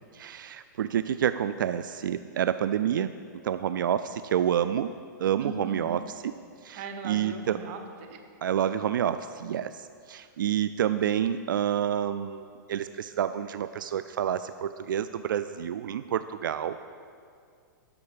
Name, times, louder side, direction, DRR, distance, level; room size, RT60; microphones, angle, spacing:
voice 1, 0.1-3.1 3.4-4.9 5.2-6.3 6.6-7.6 8.4-16.8, right 9 dB, 85° right, 12 dB, 0.4 m, -28 dB
voice 2, 5.4-6.0 6.8-8.2, right 4 dB, 40° right, 6 dB, 1.1 m, -38 dB
12.0 x 5.7 x 7.0 m, 2.3 s
hypercardioid pair, 150°, 10 cm